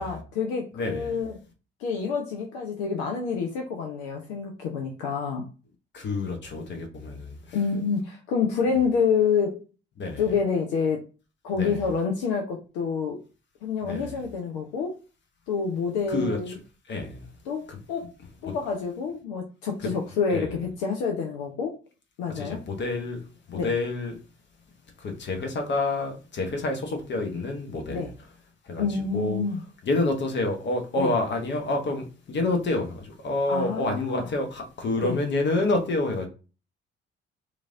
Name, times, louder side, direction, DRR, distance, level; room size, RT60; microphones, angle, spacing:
voice 1, 0.0-1.4 1.8-5.4 7.5-9.6 10.2-11.1 11.4-13.2 13.6-15.0 15.5-16.5 17.5-17.6 17.9-18.1 18.4-21.7 22.2-22.6 23.5-23.7 27.9-28.1 28.8-29.6 31.0-31.1 33.5-34.2 35.0-35.2, left 5 dB, 60° left, 0.5 m, -28 dB
voice 2, 0.7-1.2 5.9-7.6 10.0-10.2 11.5-11.8 13.8-14.2 16.1-16.6 16.9-17.3 17.7-17.8 18.4-18.5 20.3-20.5 22.3-23.2 23.5-24.2 25.0-28.1 28.6-29.4 29.8-36.3, left 2 dB, 35° left, 0.8 m, -28 dB
3.1 x 2.4 x 2.4 m
figure-of-eight pair, 45°, 31 cm